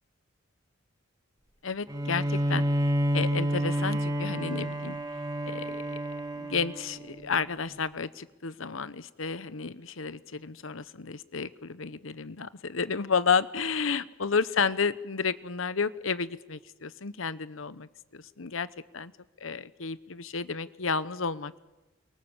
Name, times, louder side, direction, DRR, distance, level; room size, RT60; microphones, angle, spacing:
voice 1, 1.6-2.6 3.1-5.0 5.5-6.0 6.4-18.7 18.9-19.1 19.4-21.6, left 5 dB, 80° left, 15 dB, 1.0 m, -31 dB
Bowed string instrument, 1.9-7.4, equal, 20° right, 2.2 m, -29 dB
29.0 x 23.5 x 7.3 m, 1.1 s
head